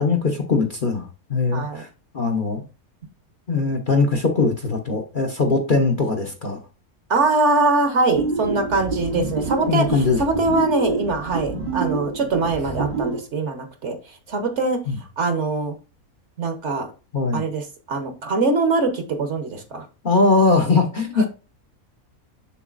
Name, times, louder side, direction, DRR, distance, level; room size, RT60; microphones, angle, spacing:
voice 1, 0.0-1.9 2.1-2.6 3.5-6.6 9.7-10.2 14.9-15.0 17.1-17.4 20.0-21.3, left 3 dB, 40° left, 2 dB, 0.9 m, -20 dB
voice 2, 1.5-1.8 7.1-14.0 14.3-14.8 15.2-15.7 16.4-16.9 17.3-19.8, right 3 dB, 55° right, 6 dB, 1.2 m, -22 dB
sound 1, 8.2-13.2, right 4 dB, 35° right, 0.9 m, -27 dB
7.0 x 6.6 x 2.5 m, 0.32 s
omnidirectional pair, 1.6 m